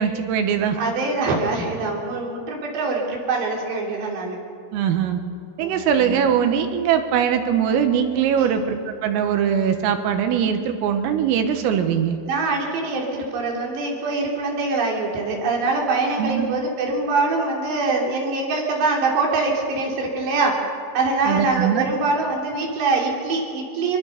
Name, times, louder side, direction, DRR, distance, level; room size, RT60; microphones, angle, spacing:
voice 1, 0.0-0.8 4.7-5.2 5.6-12.2 16.2-16.5 21.3-21.8, right 8 dB, 90° right, 6 dB, 4.1 m, -21 dB
voice 2, 0.8-4.4 5.6-5.9 8.4-8.6 12.3-20.6 20.9-24.0, right 3 dB, 60° right, -1 dB, 5.3 m, -24 dB
23.5 x 23.5 x 6.7 m, 2.3 s
omnidirectional pair, 5.8 m